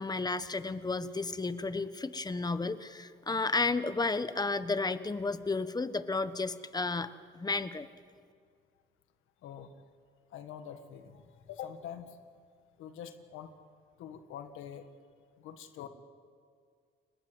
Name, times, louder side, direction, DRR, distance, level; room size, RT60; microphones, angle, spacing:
voice 1, 0.0-7.1 7.3-7.9, left 3 dB, 20° left, 12 dB, 1.2 m, -32 dB
voice 2, 9.4-9.7 10.3-12.2 12.8-13.5 14.0-14.9 15.4-15.9, left 9 dB, 90° left, 8 dB, 1.7 m, -45 dB
29.5 x 20.5 x 8.0 m, 2.1 s
cardioid pair, 90°, 20 cm